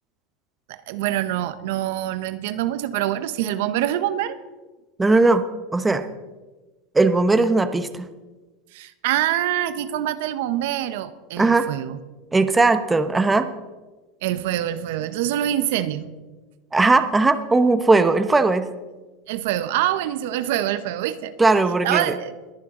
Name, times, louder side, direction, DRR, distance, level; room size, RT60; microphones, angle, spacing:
voice 1, 0.7-4.4 8.7-12.0 14.2-16.1 19.3-21.3 21.8-22.4, right 12 dB, 75° right, 12 dB, 0.9 m, -25 dB
voice 2, 5.0-5.4 5.7-6.1 6.9-8.1 11.4-11.7 12.3-13.5 16.7-18.7 21.4-22.1, right 3 dB, 10° right, 10 dB, 0.9 m, -18 dB
21.5 x 10.0 x 3.8 m, 1.2 s
supercardioid pair, 120°, 0 cm